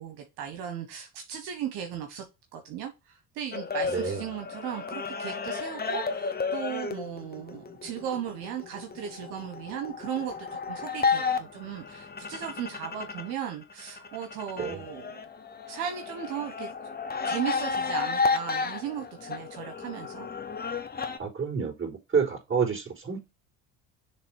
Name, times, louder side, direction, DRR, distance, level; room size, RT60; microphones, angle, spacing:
voice 1, 0.0-2.2 2.5-15.2 15.7-16.7 17.2-20.3, right 9 dB, 75° right, 1.2 m, -36 dB
sound 1, 3.5-13.3 13.6-21.2, left 5 dB, 25° left, 1.0 m, -32 dB
voice 2, 21.2-23.2, right 6 dB, 30° right, 3.9 m, -29 dB
6.7 x 3.2 x 4.6 m
supercardioid pair, 70°, 40 cm